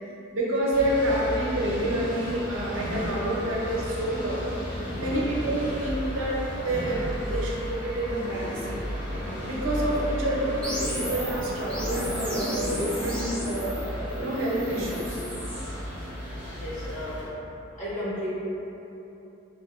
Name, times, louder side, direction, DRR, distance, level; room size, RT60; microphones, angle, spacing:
voice 1, 0.3-4.5 5.0-8.8 9.4-13.8 14.2-15.2, right 1 dB, 85° right, -5 dB, 0.6 m, -28 dB
sound 1, 0.7-17.3, equal, 65° left, 1.2 m, -34 dB
sound 2, 10.6-15.7, equal, 5° left, 0.6 m, -34 dB
voice 2, 16.4-17.3 17.7-18.3, left 1 dB, 40° left, -10 dB, 1.0 m, -34 dB
3.6 x 2.5 x 2.3 m, 3.0 s
head